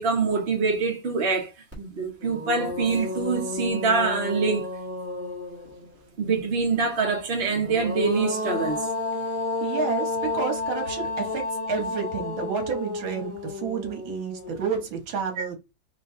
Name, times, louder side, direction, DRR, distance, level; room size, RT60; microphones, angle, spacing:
voice 1, 0.0-1.5 1.8-4.7 6.2-8.9 15.4-15.5, right 4 dB, 40° right, 1.1 m, -25 dB
sound 1, 1.7-1.8 2.2-5.9 7.5-14.8, left 3 dB, 10° right, 1.0 m, -31 dB
voice 2, 9.6-15.6, right 6 dB, 75° right, 1.9 m, -30 dB
3.7 x 3.0 x 3.7 m
omnidirectional pair, 2.2 m